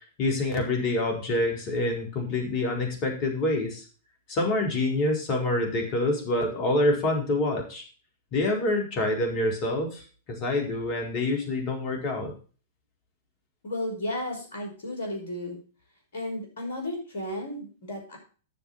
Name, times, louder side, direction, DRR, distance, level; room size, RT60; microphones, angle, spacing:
voice 1, 0.2-3.8 4.3-7.8 8.3-12.3, left 2 dB, 40° left, 2 dB, 4.5 m, -26 dB
voice 2, 13.6-15.6 16.1-18.2, left 1 dB, 65° left, 2 dB, 5.6 m, -33 dB
10.0 x 7.0 x 5.7 m, 0.37 s
figure-of-eight pair, 105°, 0 cm